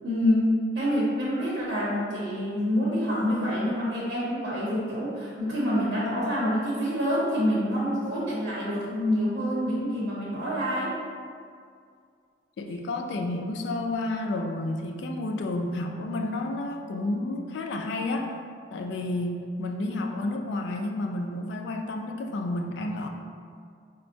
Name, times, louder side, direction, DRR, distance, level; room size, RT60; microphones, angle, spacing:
voice 1, 0.0-10.9, equal, 85° right, -7 dB, 0.8 m, -27 dB
voice 2, 12.6-18.3 18.7-23.1, left 2 dB, 90° left, 3 dB, 0.3 m, -30 dB
4.3 x 2.1 x 2.6 m, 2.2 s
head